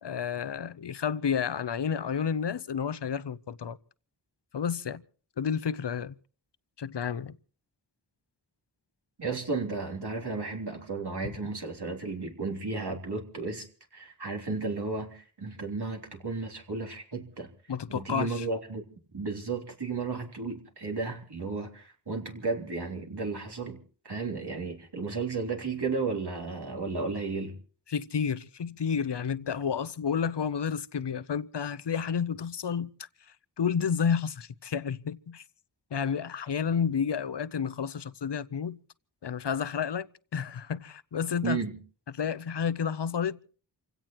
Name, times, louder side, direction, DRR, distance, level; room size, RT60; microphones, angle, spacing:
voice 1, 0.0-3.8 4.5-5.0 5.4-6.1 6.8-7.3 11.2-11.4 17.7-18.5 27.9-33.1 33.6-35.4 35.9-38.8 39.2-41.6 42.1-43.4, left 7 dB, 70° left, 0.7 m, -31 dB
voice 2, 9.2-13.7 13.9-17.5 17.9-18.8 19.1-23.8 24.1-27.5 41.4-41.8, right 4 dB, 60° right, 3.4 m, -33 dB
29.0 x 16.5 x 3.0 m
wide cardioid pair, 65°, 44 cm